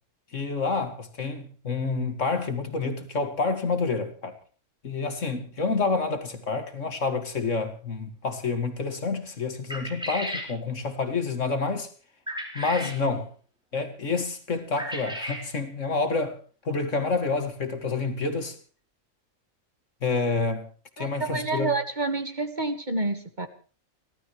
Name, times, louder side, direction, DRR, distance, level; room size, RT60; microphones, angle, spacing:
voice 1, 0.3-4.4 4.8-11.9 12.5-13.3 13.7-16.4 16.6-18.6 20.0-20.7 21.0-21.7, left 4 dB, 60° left, 2.5 m, -28 dB
sound 1, 9.7-10.5 12.3-13.0 14.8-15.4, equal, 5° right, 4.7 m, -34 dB
voice 2, 21.0-23.5, right 3 dB, 35° right, 1.7 m, -28 dB
30.0 x 13.0 x 3.2 m
omnidirectional pair, 1.5 m